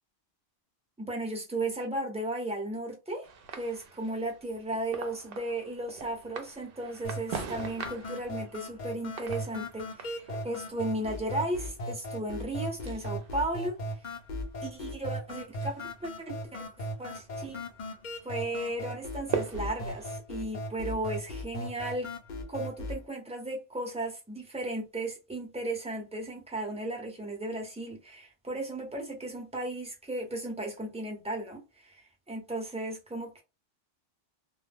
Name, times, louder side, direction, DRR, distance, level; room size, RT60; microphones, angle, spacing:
voice 1, 1.0-13.8 14.6-15.8 16.0-17.6 18.2-22.1 22.5-33.4, right 1 dB, 5° right, 0.6 m, -35 dB
sound 1, 3.2-20.2, right 6 dB, 60° right, 0.7 m, -43 dB
sound 2, 7.0-23.0, left 1 dB, 50° left, 0.7 m, -38 dB
2.2 x 2.1 x 3.4 m
omnidirectional pair, 1.2 m